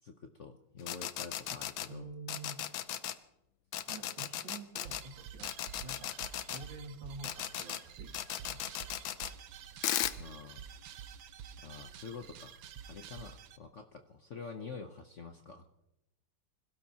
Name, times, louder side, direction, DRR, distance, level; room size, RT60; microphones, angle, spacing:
voice 1, 0.0-2.1 10.2-10.7 11.6-15.7, left 5 dB, 55° left, 5 dB, 0.9 m, -47 dB
sound 1, 0.8-1.9 2.3-3.1 3.7-5.0 5.4-6.6 7.2-7.8 8.1-9.3 9.8-10.2, left 12 dB, 85° left, 1.5 m, -36 dB
voice 2, 1.9-2.6 3.8-6.1 6.5-8.1 8.4-8.6, right 3 dB, 70° right, 3 dB, 2.7 m, -48 dB
sound 2, 4.8-13.6, right 8 dB, 85° right, 1.6 m, -49 dB
27.0 x 16.5 x 2.8 m, 0.89 s
omnidirectional pair, 2.1 m